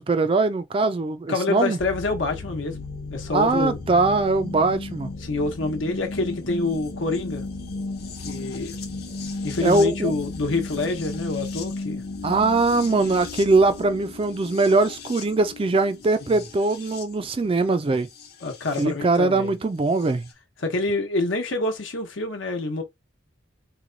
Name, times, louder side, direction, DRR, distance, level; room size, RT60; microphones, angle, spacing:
voice 1, 0.0-1.8 3.3-5.1 9.6-10.1 12.2-18.1 18.8-20.3, right 3 dB, 25° right, 0.3 m, -21 dB
voice 2, 1.3-2.8 3.1-3.8 5.2-7.4 8.2-8.7 9.4-12.0 16.3-16.4 18.4-19.5 20.6-22.8, left 3 dB, 75° left, 1.0 m, -27 dB
sound 1, 1.8-18.8 20.0-20.1, left 3 dB, 50° left, 0.8 m, -35 dB
3.1 x 2.2 x 3.8 m
head